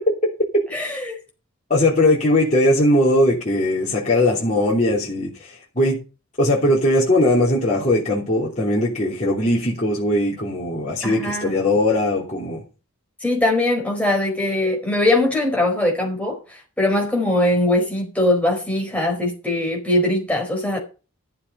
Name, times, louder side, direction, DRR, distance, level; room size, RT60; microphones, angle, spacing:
voice 1, 0.7-1.1 11.0-11.6 13.2-20.8, left 1 dB, 5° left, 4.4 m, -21 dB
voice 2, 1.7-6.0 6.4-12.6, left 1 dB, 35° left, 3.1 m, -19 dB
13.0 x 7.1 x 5.5 m
head